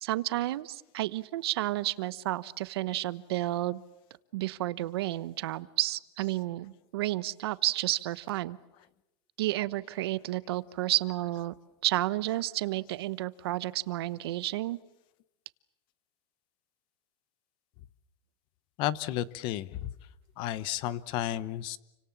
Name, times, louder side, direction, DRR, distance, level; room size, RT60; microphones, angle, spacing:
voice 1, 0.0-3.8 4.3-8.6 9.4-11.5 11.8-14.8, right 16 dB, 75° right, 16 dB, 1.0 m, -31 dB
voice 2, 18.8-19.9 20.4-21.8, left 12 dB, 40° left, 17 dB, 1.0 m, -32 dB
29.5 x 25.0 x 7.3 m, 0.93 s
supercardioid pair, 165°, 13 cm